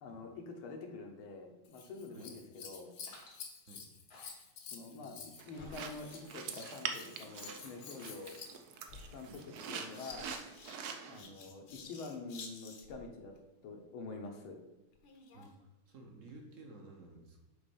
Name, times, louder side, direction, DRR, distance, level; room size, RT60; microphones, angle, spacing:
voice 1, 0.0-3.0 4.7-8.3 9.1-10.3 11.0-13.3 13.6-14.6, left 3 dB, 75° left, 3 dB, 1.8 m, -47 dB
Scissors, 1.6-13.0 15.0-15.6 16.3-16.4, left 5 dB, 55° left, 1.3 m, -51 dB
sound 1, 3.0-9.0, left 2 dB, 90° left, 2.7 m, -60 dB
sound 2, 5.4-11.2, right 6 dB, 90° right, 0.8 m, -45 dB
voice 2, 15.3-17.4, right 2 dB, 50° right, 3 dB, 1.0 m, -54 dB
7.1 x 4.0 x 5.3 m, 0.94 s
omnidirectional pair, 2.4 m